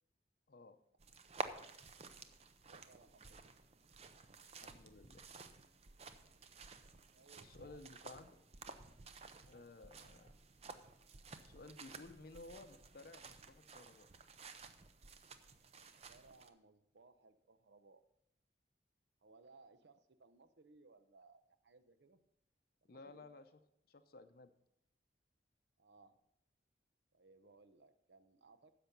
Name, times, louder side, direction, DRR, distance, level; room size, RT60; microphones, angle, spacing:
sound 1, 1.0-16.5, right 4 dB, 35° right, 0.6 m, -53 dB
voice 1, 2.7-3.5 7.1-7.8 15.8-18.0 19.2-22.2 22.8-23.2 25.8-26.2 27.1-28.7, right 3 dB, 75° right, 11 dB, 0.8 m, -64 dB
voice 2, 4.6-5.2 7.4-8.4 9.4-10.4 11.4-14.1 22.9-23.5 23.9-24.5, left 3 dB, 55° left, 10 dB, 0.6 m, -56 dB
10.5 x 7.0 x 5.4 m, 0.79 s
head